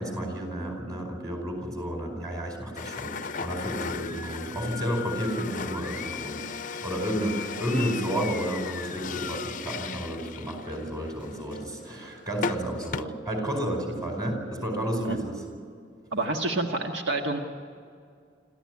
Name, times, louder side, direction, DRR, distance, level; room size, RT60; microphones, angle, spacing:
voice 1, 0.0-6.4 6.8-15.4, equal, 20° right, 3 dB, 4.9 m, -31 dB
sound 1, 2.8-13.0, left 6 dB, 45° left, 0.5 m, -36 dB
voice 2, 16.1-17.4, right 2 dB, 70° right, 3 dB, 1.6 m, -28 dB
27.0 x 14.5 x 9.7 m, 2.3 s
head